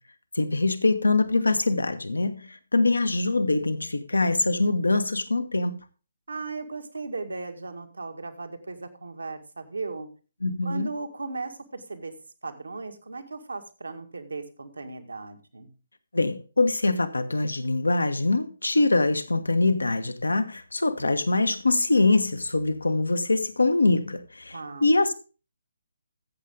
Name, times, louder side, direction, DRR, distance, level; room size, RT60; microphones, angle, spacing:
voice 1, 0.3-5.8 10.4-10.9 16.1-24.6 24.8-25.1, left 2 dB, 75° left, 1.3 m, -23 dB
voice 2, 6.3-10.1 10.6-12.1 12.4-15.7 24.5-24.9, right 3 dB, 70° right, 1.9 m, -36 dB
14.5 x 7.6 x 3.7 m
figure-of-eight pair, 140°, 0 cm